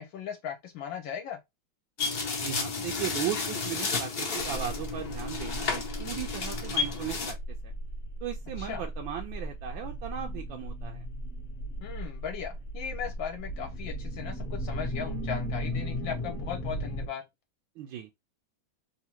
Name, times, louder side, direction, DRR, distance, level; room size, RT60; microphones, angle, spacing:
voice 1, 0.0-1.4 8.6-8.9 11.8-17.2, left 8 dB, 75° left, 1.3 m, -37 dB
sound 1, 2.0-7.3, left 4 dB, 60° left, 0.6 m, -32 dB
voice 2, 2.4-7.4 7.6-7.7 8.2-11.0 17.8-18.1, right 10 dB, 80° right, 1.3 m, -37 dB
sound 2, 4.4-17.1, equal, 35° left, 0.9 m, -36 dB
3.6 x 2.5 x 2.8 m
omnidirectional pair, 2.2 m